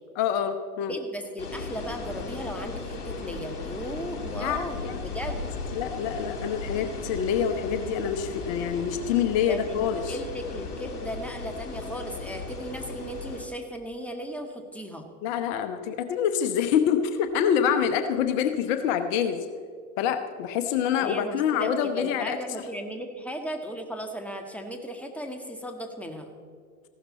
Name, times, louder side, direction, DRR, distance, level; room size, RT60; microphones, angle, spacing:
voice 1, 0.2-0.9 4.4-4.9 5.7-10.2 15.2-19.5 20.0-22.4, left 8 dB, 55° left, 9 dB, 1.1 m, -26 dB
voice 2, 0.9-5.5 9.5-15.1 21.0-26.3, equal, 5° left, 5 dB, 1.8 m, -36 dB
sound 1, 1.4-13.5, left 4 dB, 80° left, 2.3 m, -36 dB
15.5 x 12.0 x 4.2 m, 2.1 s
hypercardioid pair, 85°, 44 cm